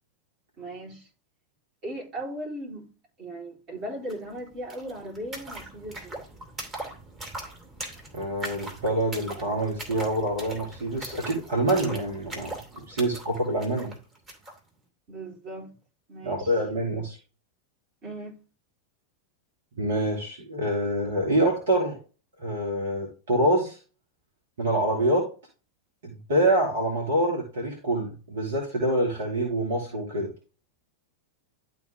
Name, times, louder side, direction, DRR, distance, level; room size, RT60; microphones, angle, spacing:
voice 1, 0.6-1.1 1.8-2.9 3.2-6.2 12.9-13.0 15.1-15.7 16.1-16.5 18.0-18.4, right 1 dB, 40° right, 4.0 m, -37 dB
sound 1, 4.1-4.2 4.4-14.6, right 1 dB, 20° right, 3.0 m, -40 dB
voice 2, 8.1-12.6 12.9-14.0 16.2-17.2 19.8-22.0 22.4-23.8 24.6-25.3 26.0-30.3, right 1 dB, 60° right, 2.5 m, -26 dB
12.0 x 4.0 x 3.5 m
figure-of-eight pair, 90°, 0 cm